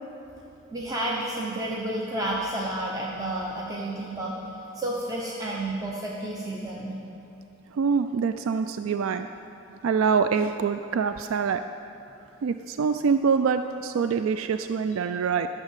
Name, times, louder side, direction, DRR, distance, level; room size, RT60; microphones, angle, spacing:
voice 1, 0.7-4.3 4.7-7.0, right 1 dB, 15° right, -4 dB, 0.9 m, -31 dB
voice 2, 7.7-9.3 9.8-11.6 12.4-15.5, right 6 dB, 85° right, 9 dB, 0.3 m, -25 dB
12.0 x 6.7 x 7.3 m, 2.9 s
head